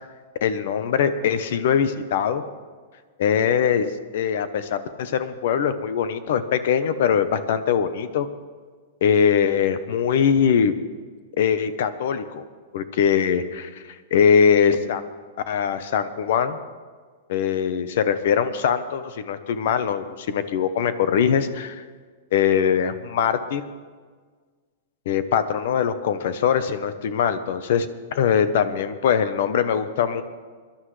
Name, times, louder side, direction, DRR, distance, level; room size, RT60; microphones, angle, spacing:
voice 1, 0.4-2.4 3.2-8.3 9.0-10.7 11.4-12.4 12.7-13.8 14.1-15.1 15.5-16.6 17.3-21.8 22.3-23.6 25.1-30.2, left 7 dB, 65° left, 12 dB, 0.9 m, -22 dB
21.5 x 11.5 x 3.3 m, 1.5 s
hypercardioid pair, 145°, 0 cm